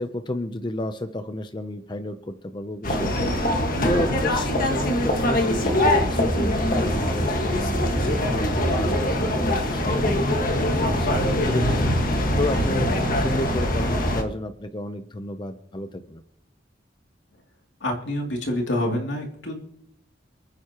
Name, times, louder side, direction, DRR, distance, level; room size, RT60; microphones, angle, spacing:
voice 1, 0.0-16.2, left 1 dB, 25° left, 8 dB, 0.6 m, -32 dB
sound 1, 2.8-14.2, left 1 dB, 45° left, 1.6 m, -23 dB
sound 2, 6.3-13.2, right 1 dB, 5° left, 3.7 m, -40 dB
voice 2, 17.8-19.6, left 1 dB, 75° left, 1 dB, 2.7 m, -27 dB
28.0 x 9.4 x 3.0 m, 0.75 s
head